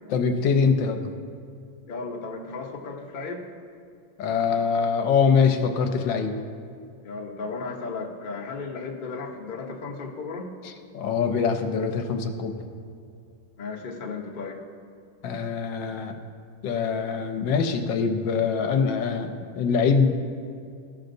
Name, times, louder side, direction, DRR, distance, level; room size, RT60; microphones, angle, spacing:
voice 1, 0.1-1.1 4.2-6.3 10.6-12.7 15.2-16.1 16.6-19.3 19.6-20.1, left 5 dB, 75° left, 6 dB, 1.3 m, -23 dB
voice 2, 1.9-3.5 7.0-10.5 13.6-14.6, left 4 dB, 60° left, -1 dB, 0.5 m, -35 dB
15.0 x 6.4 x 2.6 m, 2.4 s
omnidirectional pair, 2.2 m